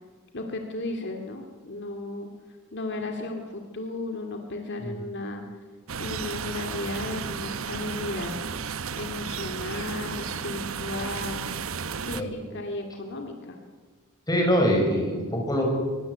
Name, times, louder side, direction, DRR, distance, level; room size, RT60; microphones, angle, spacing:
voice 1, 0.3-2.3 2.7-5.4 6.0-8.3 8.9-11.5 12.0-13.6, left 2 dB, 60° left, 3 dB, 2.5 m, -34 dB
sound 1, 5.9-12.2, right 6 dB, 80° right, 0.9 m, -33 dB
voice 2, 14.3-15.7, equal, 20° left, 1 dB, 5.9 m, -24 dB
23.0 x 21.5 x 8.2 m, 1.5 s
head